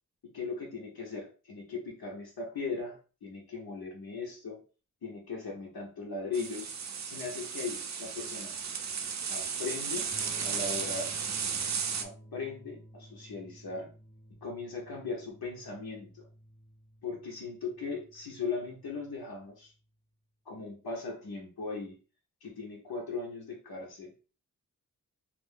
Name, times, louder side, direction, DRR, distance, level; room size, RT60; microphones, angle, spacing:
voice 1, 0.3-4.6 5.0-6.7 7.1-8.5 9.3-10.1 10.4-11.1 12.0-13.9 14.4-16.2 17.0-19.7 20.5-22.0 22.4-24.1, left 4 dB, 80° left, -2 dB, 0.9 m, -38 dB
sound 1, 6.3-12.0, right 6 dB, 50° right, 0.4 m, -34 dB
Electric guitar / Strum, 10.1-19.9, right 1 dB, 15° left, 0.6 m, -54 dB
2.5 x 2.4 x 3.6 m, 0.36 s
wide cardioid pair, 95°, 36 cm